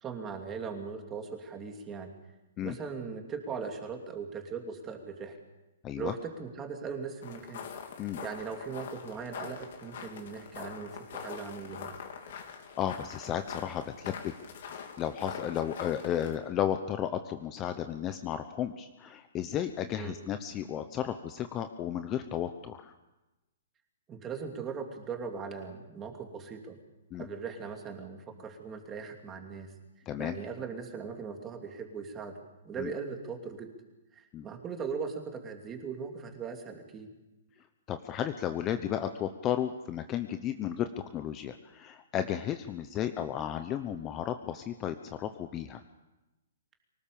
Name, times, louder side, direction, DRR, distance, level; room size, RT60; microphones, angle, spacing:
voice 1, 0.0-2.1 2.6-5.4 6.0-7.6 8.2-11.9 20.0-20.2 24.1-26.8 27.2-29.7 30.2-32.4 32.6-33.7 34.1-37.1, right 5 dB, 15° right, 3 dB, 2.8 m, -39 dB
sound 1, 7.2-16.4, left 7 dB, 55° left, 3.5 m, -44 dB
voice 2, 12.8-14.3 15.0-22.9 27.1-27.3 30.1-30.4 32.8-32.9 34.3-34.5 37.9-45.8, left 10 dB, 20° left, 8 dB, 0.9 m, -33 dB
24.5 x 18.5 x 7.0 m, 1.0 s
hypercardioid pair, 160°, 0 cm